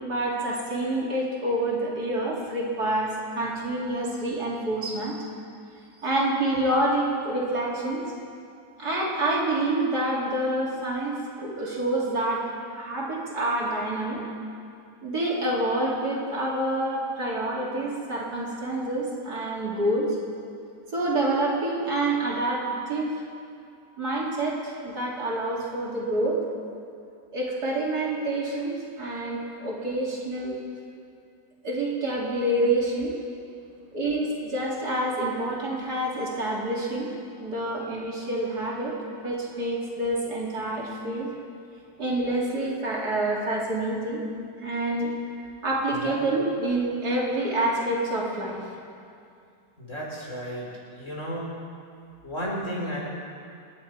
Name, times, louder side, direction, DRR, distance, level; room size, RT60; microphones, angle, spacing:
voice 1, 0.0-5.1 6.0-8.0 8.8-12.4 12.7-14.2 15.0-20.2 20.9-23.1 24.0-26.4 27.3-30.6 31.6-33.2 33.9-37.1 37.4-41.3 42.0-44.2 44.6-45.1 45.6-48.6, right 1 dB, 60° right, -4 dB, 3.2 m, -27 dB
voice 2, 49.8-50.7 51.0-51.5 52.2-53.0, equal, 40° left, -4 dB, 4.3 m, -33 dB
27.0 x 11.0 x 4.8 m, 2.4 s
omnidirectional pair, 2.0 m